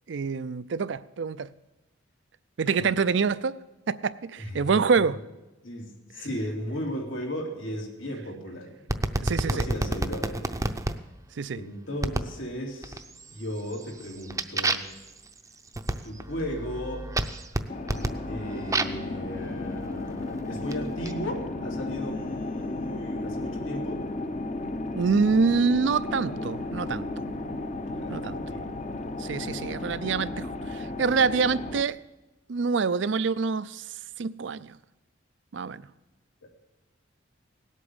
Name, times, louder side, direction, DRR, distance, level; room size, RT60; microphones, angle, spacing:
voice 1, 0.1-1.5 2.6-3.6 3.9-5.2 6.2-6.3 9.2-9.7 11.4-11.6 24.9-27.1 28.1-28.4 29.2-32.0 32.5-33.8 34.2-34.8 35.5-35.9, right 5 dB, 70° right, 0.5 m, -26 dB
voice 2, 4.4-5.2 5.6-9.0 9.3-10.6 11.6-13.0 13.3-14.9 16.0-17.1 18.3-24.0 27.8-28.7 36.4-36.5, equal, 90° left, 3.0 m, -36 dB
sound 1, 8.9-11.0 12.0-12.4 12.8-13.3 13.7-19.1 19.9-21.1, right 2 dB, 15° right, 0.6 m, -30 dB
sound 2, 17.7-31.8, left 2 dB, 35° left, 0.7 m, -34 dB
18.0 x 8.3 x 7.1 m
head